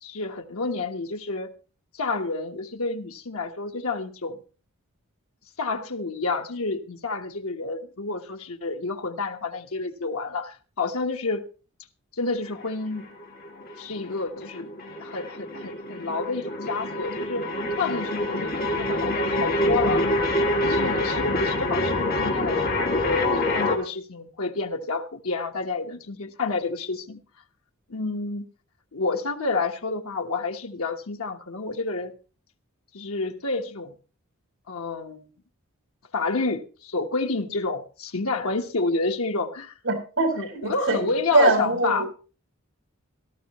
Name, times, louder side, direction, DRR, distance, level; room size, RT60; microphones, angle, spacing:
voice 1, 0.0-1.5 1.9-4.4 5.6-11.5 12.1-13.1 13.8-14.7 15.0-17.4 17.8-20.1 20.6-27.2 27.9-28.4 28.9-32.1 32.9-33.9 34.7-35.3 36.1-39.7 40.3-42.0, left 3 dB, 80° left, 5 dB, 1.3 m, -29 dB
sound 1, 12.5-23.8, left 1 dB, 45° left, 2.5 m, -26 dB
voice 2, 39.8-41.0 41.3-42.1, right 2 dB, 65° right, 3 dB, 5.0 m, -22 dB
17.0 x 13.5 x 3.1 m, 0.36 s
head